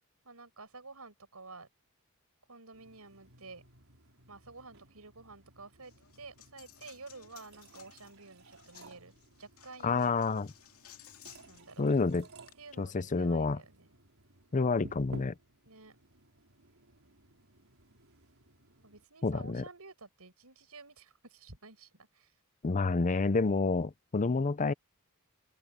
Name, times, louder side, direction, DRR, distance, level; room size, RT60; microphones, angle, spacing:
voice 1, 0.2-1.7 2.5-3.6 4.3-9.1 9.4-10.2 11.5-11.9 12.6-13.9 15.6-16.0 18.8-22.3, right 3 dB, 85° right, 5.9 m, -51 dB
sound 1, 2.7-19.0, right 1 dB, 65° right, 5.4 m, -56 dB
Coin (dropping), 5.8-12.5, left 11 dB, 75° left, 2.6 m, -58 dB
voice 2, 9.8-10.5 11.8-12.3 12.8-13.6 14.5-15.3 19.2-19.6 22.6-24.7, left 3 dB, 35° left, 0.6 m, -29 dB
open air
head